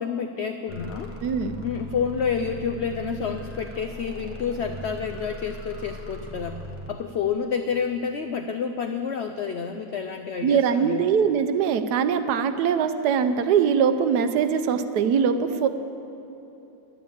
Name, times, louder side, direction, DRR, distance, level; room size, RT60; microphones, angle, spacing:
voice 1, 0.0-1.1 1.6-6.6 6.9-11.1, left 6 dB, 80° left, 7 dB, 0.5 m, -29 dB
sound 1, 0.7-6.9, left 1 dB, 10° left, 0.8 m, -39 dB
voice 2, 1.2-1.6 10.4-15.7, right 7 dB, 75° right, 10 dB, 1.2 m, -22 dB
11.0 x 9.5 x 8.7 m, 3.0 s
omnidirectional pair, 1.8 m